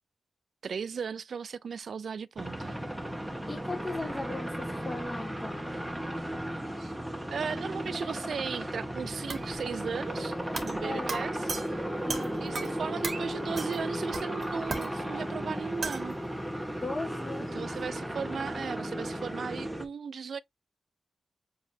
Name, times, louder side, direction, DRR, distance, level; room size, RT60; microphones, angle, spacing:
voice 1, 0.6-2.8 6.8-6.9 7.3-10.4 10.6-11.4 12.4-16.1 17.5-20.4, right 6 dB, 80° right, 0.4 m, -36 dB
sound 1, 2.4-19.8, equal, 10° right, 1.3 m, -35 dB
voice 2, 3.5-5.6 10.8-11.1 12.0-12.3 16.8-17.7, left 2 dB, 25° left, 1.0 m, -37 dB
sound 2, 9.3-9.6 10.6-10.8 11.1-12.8 13.0-13.3 13.6-13.9 14.1-14.9 15.8-16.1, right 4 dB, 60° right, 1.5 m, -36 dB
7.0 x 2.8 x 2.6 m
wide cardioid pair, 105°, 0 cm